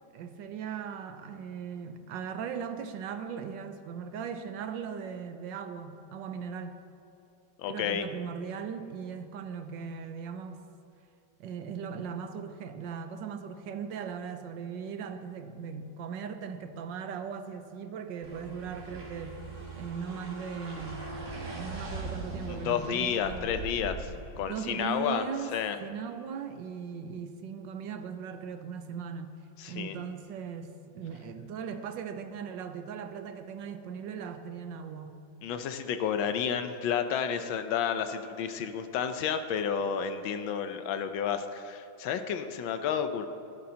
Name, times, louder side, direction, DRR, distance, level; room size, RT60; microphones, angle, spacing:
voice 1, 0.1-6.8 7.7-10.6 11.4-19.5 19.8-21.1 21.5-23.5 24.5-25.5 25.8-29.3 29.7-35.1, right 6 dB, 75° right, 8 dB, 1.3 m, -38 dB
voice 2, 7.6-8.0 22.5-24.1 24.4-25.3 25.5-25.8 29.6-30.0 35.4-43.3, left 8 dB, 90° left, 8 dB, 1.5 m, -31 dB
sound 1, 18.2-24.5, right 2 dB, 40° right, 2.3 m, -40 dB
15.5 x 11.5 x 2.8 m, 2.8 s
omnidirectional pair, 2.1 m